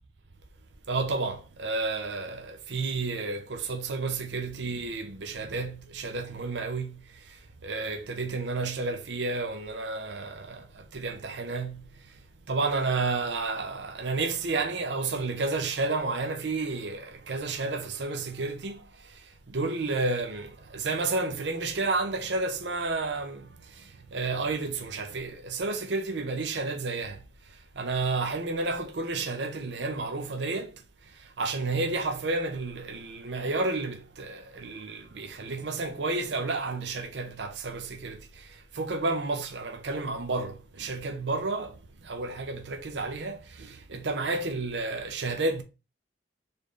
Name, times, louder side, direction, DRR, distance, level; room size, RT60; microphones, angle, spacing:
voice 1, 0.9-7.0 7.3-7.4 7.6-11.8 12.5-19.1 19.5-27.2 27.8-30.8 31.4-45.6, right 3 dB, 75° right, 0.7 m, -31 dB
4.3 x 3.5 x 3.1 m
head